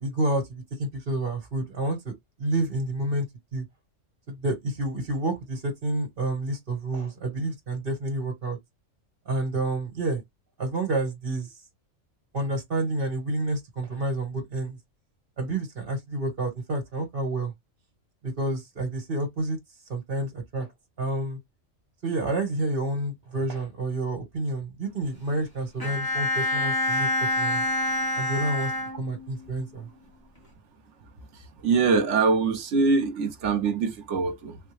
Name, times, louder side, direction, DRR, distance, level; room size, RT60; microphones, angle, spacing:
voice 1, 0.0-3.3 3.5-3.6 4.3-8.6 9.2-10.2 10.6-11.5 12.3-14.8 15.4-17.5 18.2-19.6 19.9-20.7 21.0-21.4 22.0-27.6 28.2-28.7 29.0-29.9, right 2 dB, 45° right, 1.3 m, -29 dB
Bowed string instrument, 25.8-29.5, left 1 dB, 20° left, 0.9 m, -27 dB
voice 2, 31.6-34.6, right 4 dB, 70° right, 1.1 m, -23 dB
3.6 x 2.2 x 3.2 m
omnidirectional pair, 1.3 m